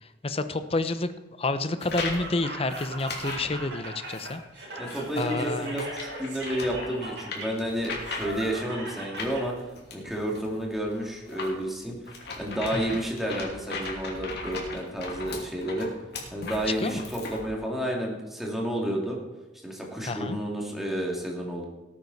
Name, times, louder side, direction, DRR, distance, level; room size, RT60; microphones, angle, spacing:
voice 1, 0.2-1.1 1.4-4.4 5.2-5.8 12.7-13.0 16.4-16.5 16.8-17.0 20.1-20.4, left 2 dB, 35° left, 11 dB, 0.8 m, -29 dB
sound 1, 1.8-2.3 2.7-3.6 4.1-4.3 4.9-8.6 9.2-17.5, left 3 dB, 65° left, 2.8 m, -38 dB
Laughter, 1.8-9.5, right 1 dB, 65° right, 4.6 m, -39 dB
voice 2, 4.8-5.9 6.2-9.5 9.9-12.0 12.4-15.9 16.3-19.2 19.6-21.6, right 1 dB, ahead, -2 dB, 2.5 m, -31 dB
18.0 x 8.7 x 4.2 m, 1.1 s
head